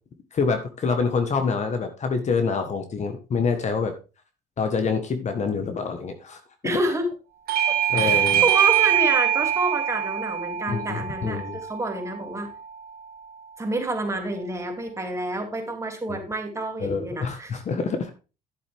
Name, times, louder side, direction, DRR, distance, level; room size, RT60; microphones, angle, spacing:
voice 1, 0.3-3.9 4.6-6.4 7.9-8.4 10.7-11.6 16.1-16.2 16.8-18.1, left 5 dB, 45° left, 7 dB, 1.6 m, -26 dB
voice 2, 6.6-7.1 7.7-11.4 11.7-12.5 13.6-17.6, right 2 dB, 15° right, 3 dB, 2.8 m, -28 dB
Bell / Doorbell, 7.5-12.7, right 11 dB, 60° right, 1.9 m, -23 dB
11.0 x 7.3 x 3.6 m, 0.32 s
cardioid pair, 110°, 17 cm